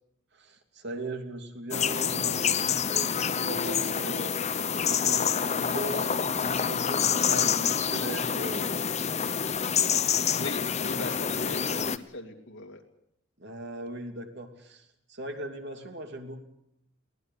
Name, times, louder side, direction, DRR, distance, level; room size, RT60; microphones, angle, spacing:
voice 1, 0.3-4.5 5.0-8.7 13.4-16.5, right 1 dB, 55° right, 4 dB, 3.0 m, -39 dB
sound 1, 1.7-12.0, left 7 dB, 35° left, 0.8 m, -27 dB
voice 2, 10.4-12.8, left 2 dB, 60° left, 4 dB, 2.7 m, -39 dB
23.0 x 18.0 x 8.2 m, 0.75 s
head